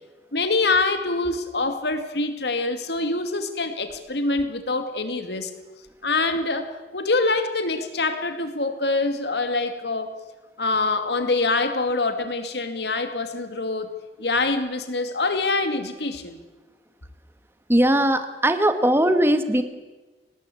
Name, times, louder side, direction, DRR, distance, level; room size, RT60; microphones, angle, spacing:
voice 1, 0.3-5.5 6.0-10.1 10.6-13.9 14.2-16.4, left 3 dB, 70° left, 8 dB, 2.4 m, -25 dB
voice 2, 17.7-19.6, right 1 dB, 15° right, 9 dB, 1.7 m, -19 dB
25.5 x 19.5 x 8.5 m, 1.2 s
head